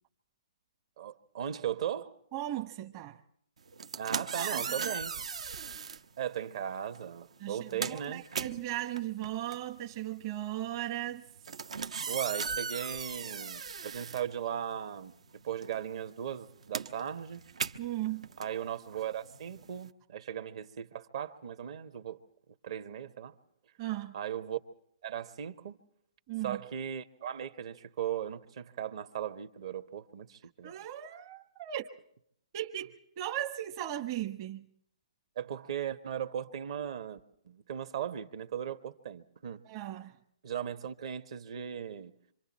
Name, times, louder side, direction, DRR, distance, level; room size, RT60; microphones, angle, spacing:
voice 1, 1.0-2.1 4.0-5.1 6.2-8.2 12.1-15.1 15.4-17.4 18.4-22.2 22.6-23.3 24.1-24.6 25.0-25.8 26.4-30.8 35.3-37.2 37.4-39.6 40.4-42.1, right 9 dB, 60° right, 1.4 m, -37 dB
voice 2, 2.3-3.2 4.2-5.0 7.4-11.3 17.8-18.3 23.8-24.2 26.3-26.6 30.6-31.9 32.5-34.7 39.7-40.2, right 13 dB, 35° right, 1.1 m, -37 dB
sound 1, 3.7-6.0 6.9-7.1 7.4-15.0 15.2-19.9, right 5 dB, 80° right, 1.0 m, -38 dB
27.0 x 26.0 x 4.3 m
hypercardioid pair, 155°, 3 cm